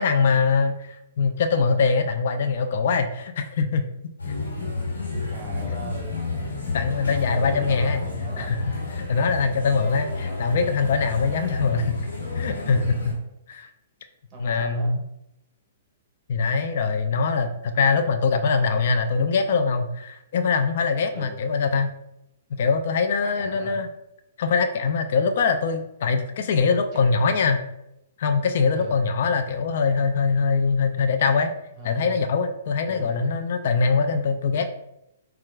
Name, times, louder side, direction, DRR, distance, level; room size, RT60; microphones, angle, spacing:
voice 1, 0.0-3.8 6.7-8.0 8.4-8.6 8.9-12.0 12.3-13.1 13.5-13.7 14.4-15.0 16.3-21.9 22.6-23.9 24.4-27.6 28.2-31.5 31.8-34.7, left 4 dB, 60° left, 8 dB, 0.3 m, -23 dB
sound 1, 4.2-13.1, left 3 dB, 90° left, 1.3 m, -30 dB
voice 2, 5.3-6.2 7.3-8.6 11.4-11.6 14.3-14.9 21.1-21.4 23.4-23.8 26.9-27.4 28.7-29.0 31.8-32.2 32.8-33.2, right 2 dB, 25° right, -2 dB, 1.4 m, -39 dB
4.4 x 2.3 x 2.3 m, 0.83 s
hypercardioid pair, 125°, 0 cm